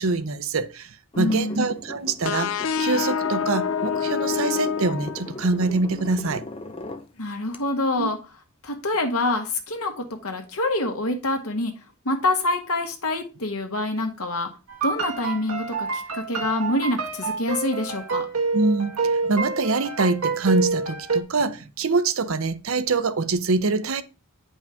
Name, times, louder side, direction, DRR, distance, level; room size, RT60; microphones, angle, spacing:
voice 1, 0.0-2.5 2.8-6.4 8.0-8.1 18.5-24.0, right 3 dB, 70° right, 0.7 m, -24 dB
voice 2, 1.1-1.7 7.2-8.2 8.6-11.7 12.0-14.5 14.8-18.3, left 2 dB, 85° left, 1.6 m, -26 dB
sound 1, 1.1-7.1 7.5-7.6, left 2 dB, 25° left, 0.7 m, -39 dB
sound 2, 2.2-5.8, left 7 dB, 65° left, 0.4 m, -27 dB
sound 3, 14.7-21.2, right 4 dB, 85° right, 1.3 m, -27 dB
9.2 x 5.3 x 3.5 m
head